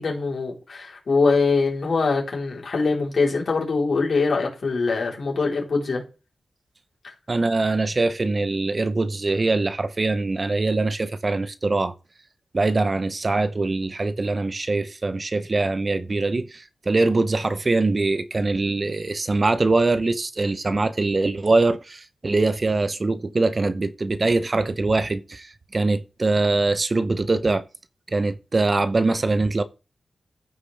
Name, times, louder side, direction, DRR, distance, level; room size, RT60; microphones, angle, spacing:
voice 1, 0.0-6.0 7.0-7.1, left 4 dB, 65° left, 3.8 m, -23 dB
voice 2, 7.3-11.9 12.5-27.6 28.1-29.6, right 3 dB, 40° right, 0.7 m, -23 dB
14.5 x 5.0 x 3.4 m
wide cardioid pair, 80°, 0 cm